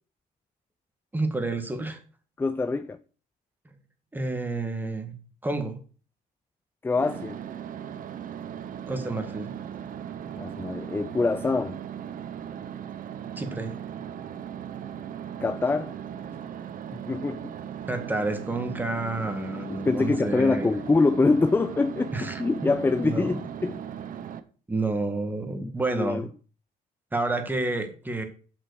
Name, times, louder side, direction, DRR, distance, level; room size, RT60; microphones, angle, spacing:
voice 1, 1.1-2.0 3.7-3.8 4.1-5.2 5.4-5.8 8.9-9.5 13.4-13.8 17.9-20.8 22.1-22.4 23.0-23.4 24.7-26.2 27.1-28.2, right 2 dB, 10° right, 1.9 m, -29 dB
voice 2, 2.4-3.0 6.8-7.3 10.4-11.8 15.4-15.9 16.9-17.5 19.8-23.8 25.6-26.2, left 3 dB, 10° left, 0.4 m, -25 dB
sound 1, 6.9-24.4, right 9 dB, 50° right, 1.0 m, -38 dB
7.7 x 5.9 x 6.5 m
cardioid pair, 110°, 18 cm